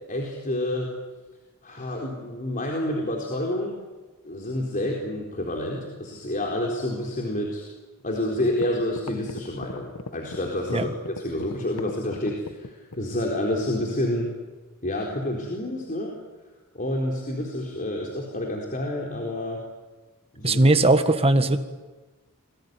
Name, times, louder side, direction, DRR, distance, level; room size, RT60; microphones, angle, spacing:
voice 1, 0.1-0.9 1.6-3.8 4.2-7.7 8.0-14.3 14.8-16.2 16.7-19.6 20.3-20.6, left 1 dB, 40° left, -1 dB, 4.1 m, -29 dB
sound 1, 8.0-8.1 8.5-13.1, left 2 dB, 75° left, 1.4 m, -38 dB
voice 2, 20.4-21.6, right 2 dB, 25° right, 8 dB, 1.7 m, -19 dB
27.5 x 21.0 x 9.5 m, 1.2 s
head